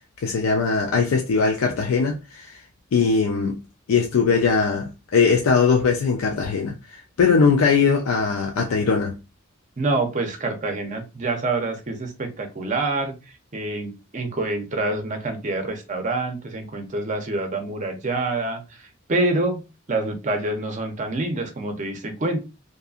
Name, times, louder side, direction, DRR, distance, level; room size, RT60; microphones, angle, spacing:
voice 1, 0.2-2.6 2.9-3.6 3.9-9.2, left 5 dB, 85° left, 0.4 m, -20 dB
voice 2, 9.8-13.2 13.5-18.6 19.1-22.4, right 2 dB, 35° right, 0.6 m, -26 dB
2.6 x 2.6 x 2.4 m
head